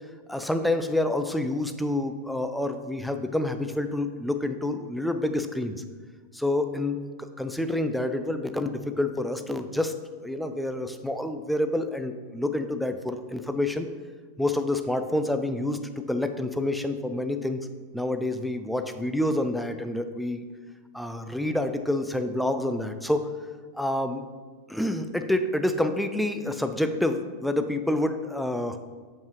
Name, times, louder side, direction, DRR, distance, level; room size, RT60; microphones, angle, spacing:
voice 1, 0.3-5.8 6.3-9.9 10.2-13.9 14.4-15.8 16.1-17.6 17.9-20.4 20.9-23.3 23.7-24.2 24.7-28.8, left 1 dB, ahead, 8 dB, 0.4 m, -28 dB
6.7 x 5.3 x 3.1 m, 1.5 s
figure-of-eight pair, 90°, 0 cm